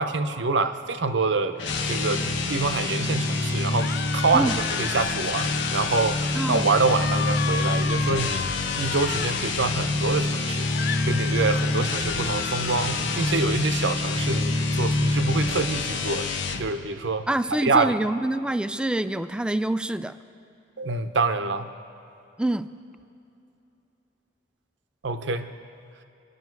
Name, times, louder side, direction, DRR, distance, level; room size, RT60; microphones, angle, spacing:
voice 1, 0.0-1.6 1.9-8.5 8.8-10.7 11.0-16.3 16.6-17.3 17.6-17.9 20.8-21.7 25.0-25.5, right 3 dB, 70° right, 9 dB, 0.8 m, -26 dB
sound 1, 1.6-16.7, left 2 dB, 75° left, 1.1 m, -26 dB
sound 2, 3.8-6.4 6.7-9.5 10.7-13.4, left 7 dB, 55° left, 0.5 m, -34 dB
voice 2, 6.3-6.7 17.3-20.2 22.4-22.7, right 1 dB, 5° right, 12 dB, 0.4 m, -26 dB
26.0 x 11.5 x 4.7 m, 2.7 s
head